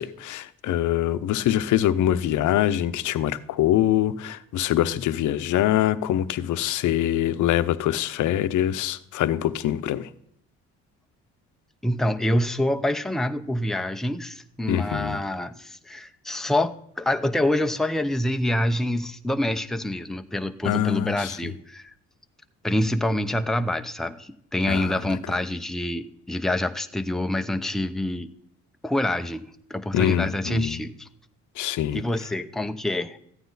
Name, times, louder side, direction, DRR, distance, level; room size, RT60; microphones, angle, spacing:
voice 1, 0.0-10.1 14.7-15.2 20.6-21.5 24.7-25.2 29.9-30.8 31.6-32.3, left 12 dB, 75° left, 0.7 m, -24 dB
voice 2, 11.8-21.9 22.6-28.3 28.8-31.1 31.9-33.2, left 1 dB, ahead, 0.6 m, -26 dB
14.0 x 9.2 x 4.0 m
cardioid pair, 90°, 30 cm